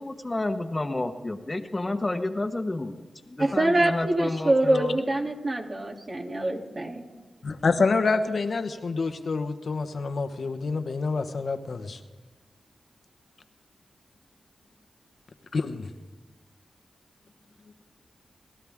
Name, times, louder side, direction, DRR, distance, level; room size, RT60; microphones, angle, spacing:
voice 1, 0.0-3.0 3.3-5.0, left 2 dB, 30° left, 8 dB, 1.2 m, -30 dB
voice 2, 3.4-7.1, right 1 dB, 50° right, -1 dB, 2.9 m, -25 dB
voice 3, 7.4-12.0 15.5-15.9, left 4 dB, 65° left, 8 dB, 1.1 m, -27 dB
27.5 x 12.5 x 3.6 m, 1.2 s
cardioid pair, 40°, 0 cm